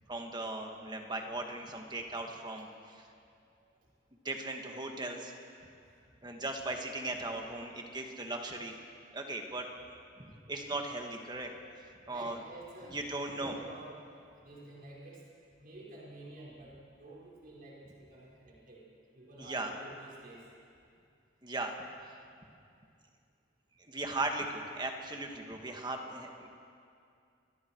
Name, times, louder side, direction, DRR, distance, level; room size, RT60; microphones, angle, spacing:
voice 1, 0.1-2.7 2.9-3.1 4.2-5.4 6.2-8.8 9.1-9.7 10.2-11.5 12.1-12.4 12.9-13.5 19.4-19.7 21.4-21.7 23.9-26.5, right 2 dB, 25° right, 3 dB, 2.0 m, -38 dB
voice 2, 11.9-15.2 15.6-18.9 19.1-20.5, right 2 dB, 50° right, -6 dB, 5.7 m, -51 dB
29.0 x 22.0 x 4.8 m, 2.4 s
head